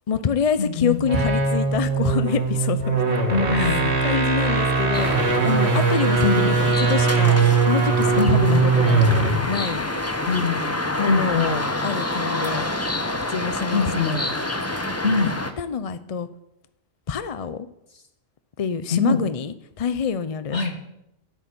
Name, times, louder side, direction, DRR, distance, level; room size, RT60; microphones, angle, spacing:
voice 1, 0.1-3.0 3.6-5.1 5.4-8.5 8.7-9.0 9.5-9.8 11.0-12.7 13.3-14.2 15.6-16.3 17.1-17.7 18.6-20.6, left 6 dB, 40° left, 12 dB, 0.6 m, -26 dB
voice 2, 0.6-1.0 3.3-3.9 6.2-6.5 8.2-8.7 10.3-10.7 11.1-11.5 13.7-14.2 15.0-15.3 18.9-19.2 20.5-20.7, left 4 dB, 85° left, 3 dB, 2.4 m, -23 dB
sound 1, 1.0-9.5, right 4 dB, 70° right, 2.2 m, -20 dB
sound 2, 4.9-15.5, left 1 dB, 15° left, 1.0 m, -28 dB
13.0 x 6.8 x 9.3 m, 0.84 s
omnidirectional pair, 1.2 m